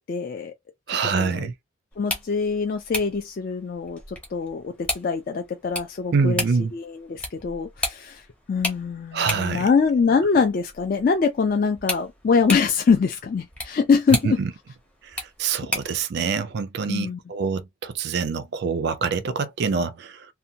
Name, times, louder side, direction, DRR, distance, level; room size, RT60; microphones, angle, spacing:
voice 1, 0.1-0.5 1.2-1.5 2.0-6.4 6.7-14.4 16.9-17.2, left 5 dB, 45° left, 0.3 m, -23 dB
voice 2, 0.9-1.5 6.1-6.7 9.1-9.7 14.2-14.5 15.1-20.3, right 5 dB, 50° right, 0.3 m, -25 dB
sound 1, 1.9-16.0, left 1 dB, 5° left, 0.6 m, -35 dB
2.7 x 2.1 x 2.6 m
head